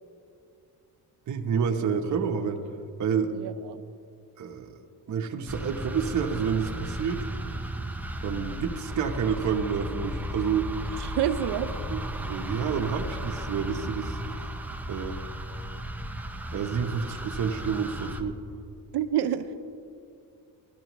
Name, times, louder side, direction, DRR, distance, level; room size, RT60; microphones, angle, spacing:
voice 1, 1.3-2.6 3.0-3.3 4.4-4.7 5.1-7.2 8.2-10.7 11.9-14.4 14.9-15.2 16.5-18.4, right 6 dB, 45° right, 3 dB, 0.9 m, -29 dB
voice 2, 3.3-3.8 10.8-11.7 15.7-15.8 18.9-19.5, right 10 dB, 70° right, 9 dB, 0.8 m, -29 dB
sound 1, 5.5-18.2, equal, 5° right, 0.5 m, -35 dB
16.5 x 12.0 x 3.1 m, 2.5 s
cardioid pair, 120°, 42 cm